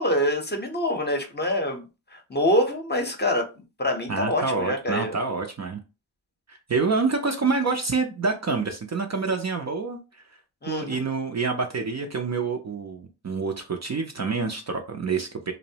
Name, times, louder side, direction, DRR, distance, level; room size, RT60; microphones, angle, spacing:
voice 1, 0.0-3.5 3.8-5.2 10.6-11.1, left 1 dB, 20° left, 3 dB, 0.7 m, -25 dB
voice 2, 4.1-5.8 6.5-10.2 10.7-15.5, right 4 dB, 40° right, 4 dB, 0.5 m, -27 dB
2.6 x 2.0 x 2.7 m, 0.30 s
cardioid pair, 40°, 46 cm